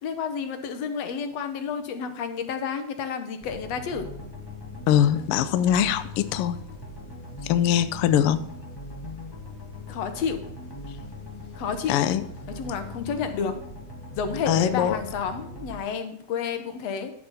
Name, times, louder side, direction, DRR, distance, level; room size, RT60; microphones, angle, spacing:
voice 1, 0.0-4.1 9.9-10.4 11.6-12.0 12.6-13.6 14.2-17.1, left 6 dB, 65° left, 8 dB, 2.2 m, -30 dB
sound 1, 3.4-15.8, left 2 dB, 15° left, 1.0 m, -40 dB
voice 2, 4.9-6.6 7.4-8.4 11.9-12.2 14.5-15.0, left 10 dB, 85° left, 12 dB, 1.2 m, -22 dB
10.5 x 8.0 x 4.1 m, 0.73 s
omnidirectional pair, 3.4 m